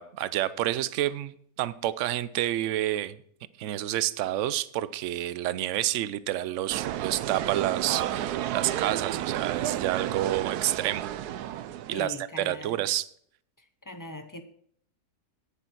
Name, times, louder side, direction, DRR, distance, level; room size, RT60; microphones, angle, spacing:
voice 1, 0.0-3.2 3.6-11.1 11.9-13.1, right 13 dB, 65° right, 0.8 m, -29 dB
sound 1, 6.7-12.1, right 12 dB, 90° right, 1.2 m, -31 dB
voice 2, 11.9-12.8 13.6-14.4, left 2 dB, 25° left, 0.4 m, -41 dB
10.0 x 9.7 x 4.6 m
omnidirectional pair, 1.6 m